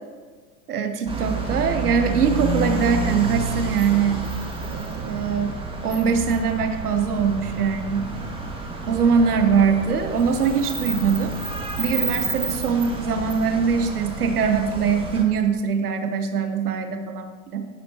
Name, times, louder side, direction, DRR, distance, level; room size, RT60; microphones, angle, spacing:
voice 1, 0.7-4.3 4.7-5.6 5.8-8.1 8.9-11.3 11.8-17.7, right 6 dB, 90° right, 7 dB, 1.0 m, -22 dB
sound 1, 1.1-15.2, right 3 dB, 10° right, 2.0 m, -30 dB
11.5 x 9.5 x 3.0 m, 1.5 s
hypercardioid pair, 90°, 44 cm